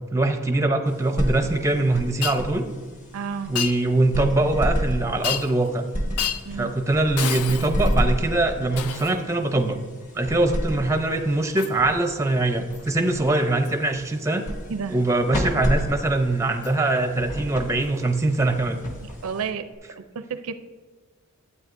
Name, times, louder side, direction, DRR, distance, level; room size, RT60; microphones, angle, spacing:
voice 1, 0.1-2.6 3.5-5.8 6.6-9.8 10.1-14.4 14.9-18.8, right 2 dB, 15° right, 5 dB, 0.5 m, -22 dB
sound 1, 0.9-19.7, equal, 35° left, 1.2 m, -31 dB
Shatter, 2.2-2.4 3.6-3.8 5.2-5.7 6.2-6.5 7.2-8.0 8.8-9.2 11.6-11.8 12.7-12.9 13.6-13.8 16.6-16.7 17.8-17.9, left 9 dB, 80° left, 0.5 m, -30 dB
voice 2, 3.1-3.6 6.5-6.7 14.7-15.0 19.2-19.7 19.9-20.5, right 6 dB, 70° right, 10 dB, 0.5 m, -31 dB
12.0 x 8.2 x 2.5 m, 1.4 s
head